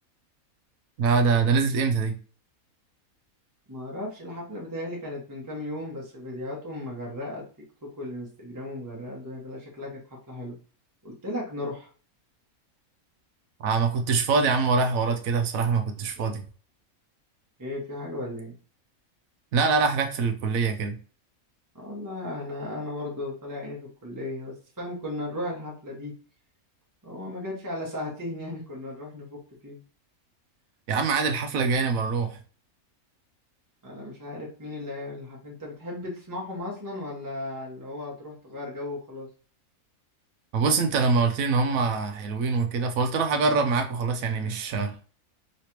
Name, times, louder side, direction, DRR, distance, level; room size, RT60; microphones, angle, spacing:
voice 1, 1.0-2.2 13.6-16.4 19.5-20.9 30.9-32.4 40.5-44.9, right 4 dB, 75° right, 1.0 m, -24 dB
voice 2, 3.7-7.4 7.8-10.5 11.0-11.9 17.6-18.5 21.7-26.1 27.0-29.8 33.8-39.3, left 1 dB, 15° right, 1.0 m, -36 dB
3.2 x 3.1 x 2.9 m
omnidirectional pair, 1.5 m